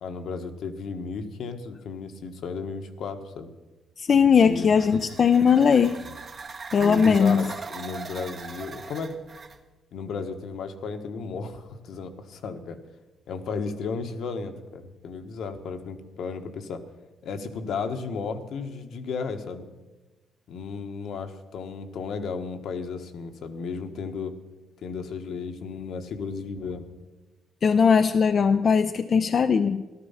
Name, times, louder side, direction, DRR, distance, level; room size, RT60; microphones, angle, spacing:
voice 1, 0.0-3.5 4.4-4.7 4.9-5.0 6.1-6.2 6.8-9.2 9.9-12.8 13.3-16.8 17.2-19.7 20.5-24.4 24.8-26.9, left 5 dB, 70° left, 6 dB, 1.3 m, -34 dB
voice 2, 4.0-6.0 6.7-7.5 27.6-29.8, left 6 dB, 50° left, 7 dB, 0.5 m, -19 dB
sound 1, 4.3-9.6, right 4 dB, 45° right, 1.3 m, -40 dB
14.5 x 12.0 x 5.7 m, 1.1 s
cardioid pair, 90°, 0 cm